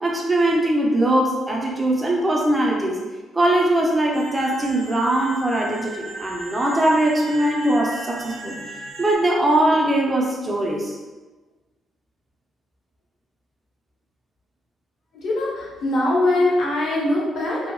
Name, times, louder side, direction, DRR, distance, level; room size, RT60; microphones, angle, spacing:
voice 1, 0.0-3.0 3.3-8.6 9.0-11.0, right 1 dB, 20° right, -1 dB, 0.5 m, -21 dB
sound 1, 4.1-9.1, right 1 dB, 70° right, 0.7 m, -36 dB
voice 2, 15.1-17.7, left 1 dB, 65° left, -4 dB, 0.9 m, -22 dB
2.7 x 2.7 x 2.2 m, 1.2 s
cardioid pair, 90°, 0 cm